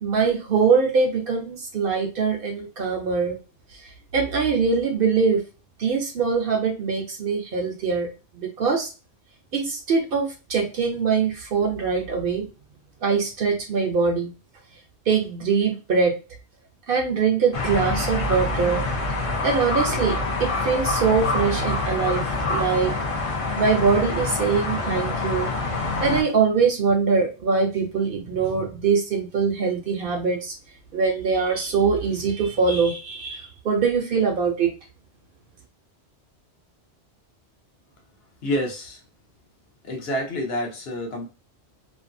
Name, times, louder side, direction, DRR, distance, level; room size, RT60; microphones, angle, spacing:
voice 1, 0.0-3.3 4.1-5.4 5.8-8.1 8.3-8.9 9.5-12.5 13.0-14.3 15.1-16.1 16.9-18.8 19.4-25.5 26.0-30.5 30.9-34.7, right 5 dB, 60° right, 2 dB, 0.7 m, -23 dB
sound 1, 17.5-26.2, left 3 dB, 45° left, 0.4 m, -26 dB
voice 2, 38.4-39.0 39.8-41.3, equal, 65° left, 1 dB, 1.0 m, -28 dB
2.6 x 2.1 x 2.5 m, 0.32 s
omnidirectional pair, 1.1 m